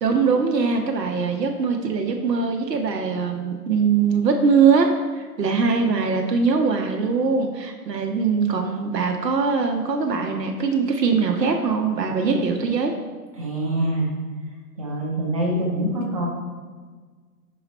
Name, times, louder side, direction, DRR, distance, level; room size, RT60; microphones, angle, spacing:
voice 1, 0.0-12.9, right 5 dB, 85° right, 3 dB, 0.9 m, -22 dB
voice 2, 13.4-14.1 14.8-16.3, right 1 dB, 20° right, -3 dB, 0.6 m, -24 dB
5.8 x 4.1 x 4.2 m, 1.5 s
hypercardioid pair, 145°, 48 cm